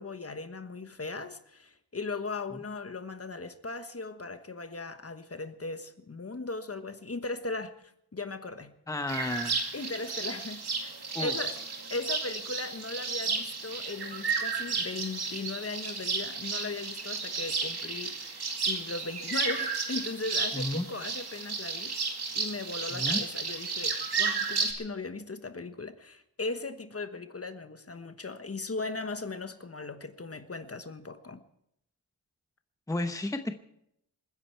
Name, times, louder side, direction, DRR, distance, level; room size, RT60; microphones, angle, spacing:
voice 1, 0.0-7.7 8.1-8.7 9.7-11.6 11.9-18.4 18.6-31.4, left 3 dB, 35° left, 1.2 m, -38 dB
voice 2, 8.9-9.6 11.1-11.3 20.5-20.9 22.9-23.2 32.9-33.5, left 1 dB, 10° left, 1.0 m, -32 dB
sound 1, 9.1-24.7, right 4 dB, 70° right, 2.4 m, -33 dB
27.5 x 10.0 x 4.6 m
wide cardioid pair, 85°, 40 cm